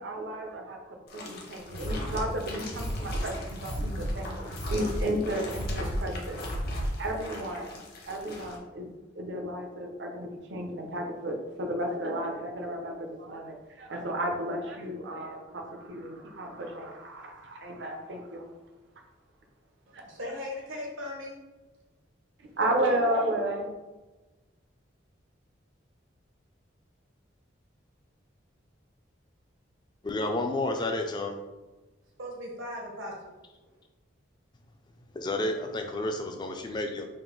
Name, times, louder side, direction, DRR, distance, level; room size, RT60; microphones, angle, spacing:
voice 1, 0.0-6.5 7.0-8.9 9.1-18.5 19.9-20.0 22.6-23.7, right 1 dB, 60° right, 3 dB, 0.6 m, -33 dB
sound 1, 1.1-8.6, left 2 dB, 50° left, 0.8 m, -42 dB
sound 2, 1.7-7.1, equal, 80° left, 1.1 m, -34 dB
voice 2, 19.9-21.4 32.2-33.1, left 1 dB, 80° right, -1 dB, 1.1 m, -38 dB
voice 3, 30.0-31.4 35.1-37.1, left 2 dB, 20° left, 4 dB, 0.3 m, -30 dB
3.7 x 2.5 x 3.8 m, 1.2 s
head